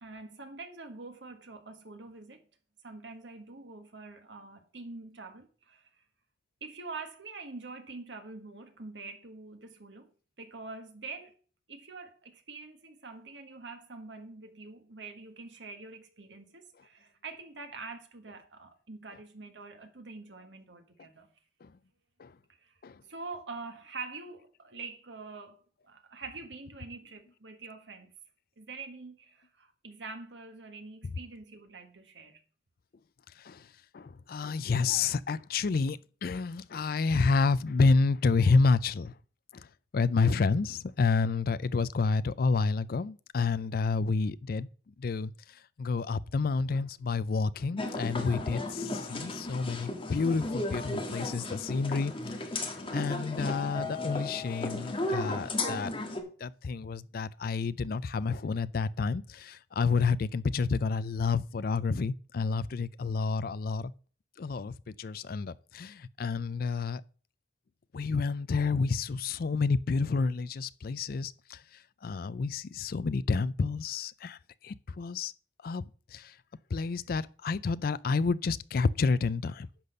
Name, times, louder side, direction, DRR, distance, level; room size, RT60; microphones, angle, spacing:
voice 1, 0.0-2.5 2.8-5.9 6.6-10.1 10.4-11.3 11.7-21.3 22.6-22.7 23.1-28.1 28.6-32.4, right 3 dB, 90° right, 1.7 m, -45 dB
voice 2, 33.9-39.1 39.5-39.7 39.9-44.7 45.0-45.3 45.8-52.4 52.9-55.9 56.4-63.9 64.4-67.0 67.9-71.6 72.0-75.3 75.6-75.9 76.1-76.3 76.7-79.7, left 4 dB, 55° left, 0.4 m, -29 dB
sound 1, 47.8-56.2, left 2 dB, 30° left, 1.5 m, -35 dB
10.0 x 4.2 x 6.6 m
head